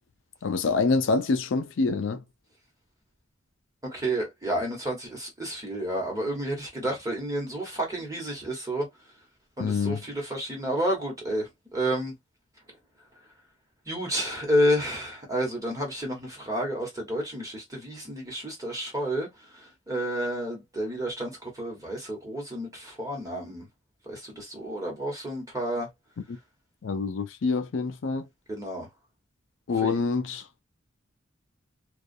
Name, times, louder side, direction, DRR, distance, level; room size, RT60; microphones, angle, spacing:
voice 1, 0.4-2.2 9.6-10.0 26.8-28.3 29.7-30.4, left 4 dB, 65° left, 0.4 m, -26 dB
voice 2, 3.8-8.9 9.6-12.1 13.9-19.3 19.5-23.7 24.1-25.9 28.5-28.9 29.8-30.0, equal, 15° right, 1.1 m, -30 dB
2.4 x 2.3 x 2.5 m
head